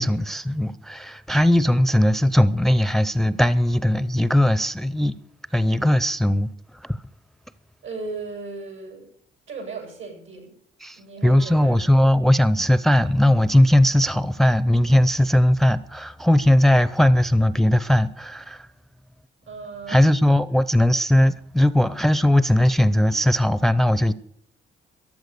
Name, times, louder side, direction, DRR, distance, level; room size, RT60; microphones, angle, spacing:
voice 1, 0.0-5.2 5.5-7.0 10.8-18.7 19.9-24.1, left 1 dB, ahead, 0.6 m, -19 dB
voice 2, 7.8-9.1 9.5-10.5 11.0-11.9 19.5-20.1, right 4 dB, 80° right, 7.8 m, -36 dB
14.5 x 10.5 x 6.8 m
cardioid pair, 90°, 20 cm